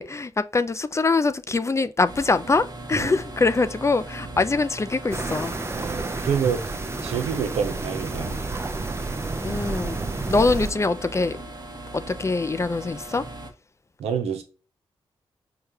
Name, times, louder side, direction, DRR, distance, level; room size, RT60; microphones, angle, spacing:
voice 1, 0.0-5.6 9.4-10.0 10.3-11.4 11.9-13.3, left 3 dB, 25° left, 0.4 m, -23 dB
sound 1, 2.0-13.5, right 2 dB, 40° right, 1.0 m, -39 dB
sound 2, 5.1-10.7, right 3 dB, 25° right, 0.6 m, -30 dB
voice 2, 5.7-8.4 14.0-14.4, right 7 dB, 85° right, 0.7 m, -28 dB
4.7 x 2.3 x 2.7 m
supercardioid pair, 45°, 11 cm